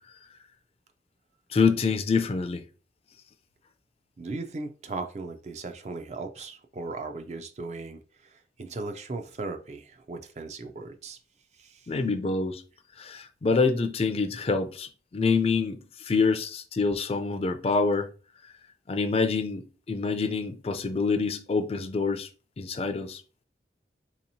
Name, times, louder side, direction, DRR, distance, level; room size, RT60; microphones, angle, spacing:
voice 1, 1.5-2.6 11.9-12.6 13.0-18.1 18.9-22.3 22.6-23.2, left 4 dB, 35° left, 0.3 m, -26 dB
voice 2, 4.2-11.2 11.6-11.9, right 3 dB, 40° right, 0.4 m, -37 dB
3.9 x 2.8 x 2.7 m
head